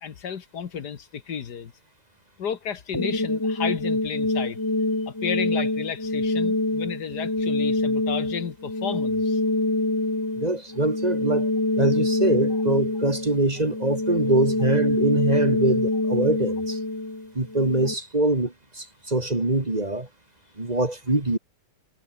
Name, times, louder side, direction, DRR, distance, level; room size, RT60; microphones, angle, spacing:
voice 1, 0.0-1.7 2.4-4.6 5.0-9.4, left 7 dB, 75° left, 2.0 m, -32 dB
sound 1, 2.9-17.9, left 2 dB, 15° left, 1.4 m, -25 dB
voice 2, 10.4-11.5 11.7-16.8 17.3-20.1 20.6-21.4, right 2 dB, 25° right, 2.4 m, -24 dB
omnidirectional pair, 1.8 m